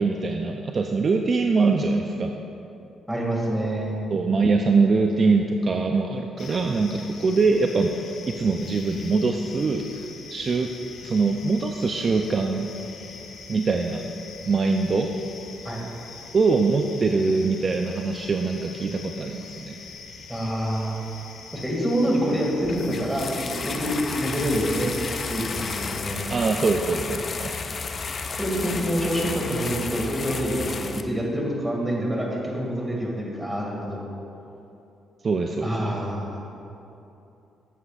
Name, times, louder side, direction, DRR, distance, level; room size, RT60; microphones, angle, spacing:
voice 1, 0.0-2.4 4.1-7.9 8.3-10.0 10.3-10.7 11.0-12.7 13.5-14.1 14.5-15.1 16.3-19.8 26.3-27.5 35.2-35.9, right 4 dB, 40° right, 3 dB, 0.4 m, -23 dB
voice 2, 3.1-4.1 15.6-15.8 20.3-20.9 21.5-24.9 25.3-26.2 28.3-34.0 35.6-36.4, equal, 10° right, -2 dB, 2.1 m, -26 dB
sound 1, 6.4-26.0, left 4 dB, 65° left, 0.9 m, -43 dB
sound 2, 22.6-31.0, left 4 dB, 40° left, 0.5 m, -32 dB
12.5 x 8.2 x 2.5 m, 2.8 s
cardioid pair, 90°, 0 cm